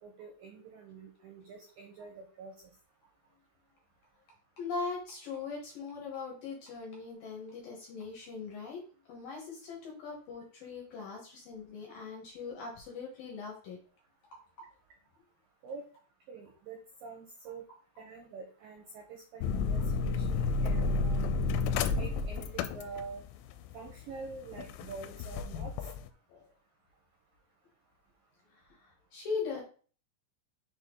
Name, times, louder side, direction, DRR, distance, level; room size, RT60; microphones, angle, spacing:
voice 1, 0.0-2.5 15.6-15.9 16.3-17.6 18.0-21.3 21.9-23.2 23.7-25.7, right 4 dB, 75° right, 1 dB, 2.1 m, -46 dB
voice 2, 4.6-8.8 9.1-13.8 14.3-14.7 25.5-25.7 26.3-26.5 28.5-29.6, left 4 dB, 65° left, -1 dB, 2.5 m, -40 dB
sound 1, 19.4-26.1, left 4 dB, 90° left, 3.0 m, -32 dB
6.9 x 4.4 x 3.8 m, 0.40 s
omnidirectional pair, 5.4 m